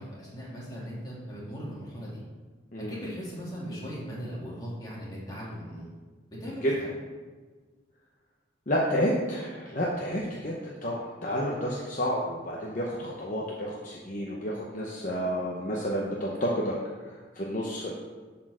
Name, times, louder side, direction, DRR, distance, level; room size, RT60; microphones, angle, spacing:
voice 1, 0.0-2.2 2.9-5.9 6.4-6.8, equal, 20° left, -6 dB, 2.2 m, -38 dB
voice 2, 8.7-10.5 10.8-16.7 17.1-17.9, equal, 45° left, -3 dB, 0.8 m, -30 dB
7.9 x 4.3 x 6.1 m, 1.4 s
head